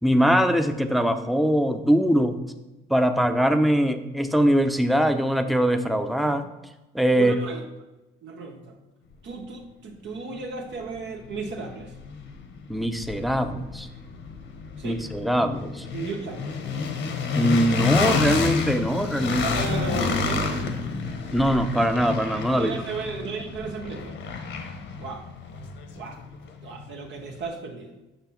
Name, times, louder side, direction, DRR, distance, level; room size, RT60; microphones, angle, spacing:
voice 1, 0.0-2.4 2.9-6.5 6.9-7.3 12.7-13.9 14.8-15.8 17.3-19.4 21.3-22.7, equal, ahead, 7 dB, 0.7 m, -22 dB
voice 2, 7.2-7.6 8.2-8.8 9.2-11.9 14.8-15.0 15.9-16.5 19.3-20.6 22.6-24.2 25.0-25.3 25.9-26.2 26.6-27.9, right 4 dB, 65° right, 1 dB, 1.1 m, -34 dB
sound 1, 10.4-10.5 10.9-26.9, left 4 dB, 75° left, 1.3 m, -30 dB
7.0 x 5.8 x 5.8 m, 1.0 s
cardioid pair, 90°, 20 cm